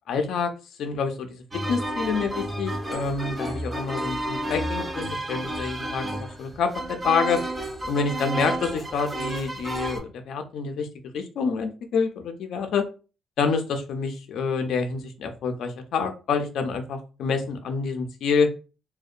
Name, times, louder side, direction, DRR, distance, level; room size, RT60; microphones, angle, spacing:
voice 1, 0.1-0.5 0.8-1.4 1.7-7.4 7.9-10.9 11.1-12.9 13.4-18.5, left 5 dB, 70° left, 6 dB, 0.4 m, -27 dB
sound 1, 1.5-10.0, right 1 dB, 20° right, 0.5 m, -31 dB
2.7 x 2.1 x 2.4 m, 0.33 s
cardioid pair, 135°, 0 cm